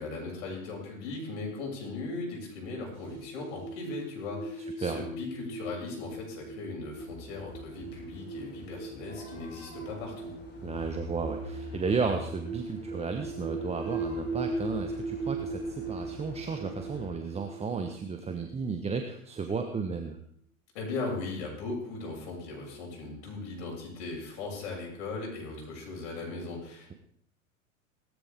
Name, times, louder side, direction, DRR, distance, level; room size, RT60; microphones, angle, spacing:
voice 1, 0.0-10.3 20.7-27.0, left 3 dB, 55° left, -1 dB, 7.4 m, -38 dB
sound 1, 2.9-19.2, right 3 dB, 30° right, 7.2 m, -39 dB
sound 2, 7.0-17.1, left 2 dB, 25° left, 6.6 m, -46 dB
voice 2, 10.6-20.2, right 5 dB, 15° right, 5 dB, 1.2 m, -33 dB
18.5 x 13.5 x 3.6 m, 0.65 s
figure-of-eight pair, 90°, 41 cm